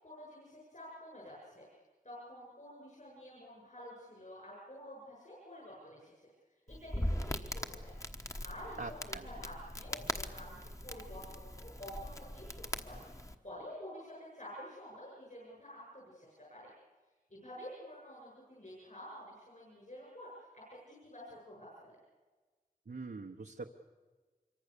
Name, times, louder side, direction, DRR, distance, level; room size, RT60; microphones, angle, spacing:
voice 1, 0.0-1.7 2.0-6.3 6.7-7.9 8.3-16.7 17.3-21.9, equal, 55° left, -4 dB, 7.9 m, -50 dB
Crackle, 6.7-13.3, left 1 dB, 20° left, 1.2 m, -41 dB
voice 2, 8.8-9.2 22.9-23.7, right 3 dB, 85° right, 2 dB, 1.0 m, -43 dB
25.5 x 23.5 x 6.9 m, 1.4 s
wide cardioid pair, 65°, 16 cm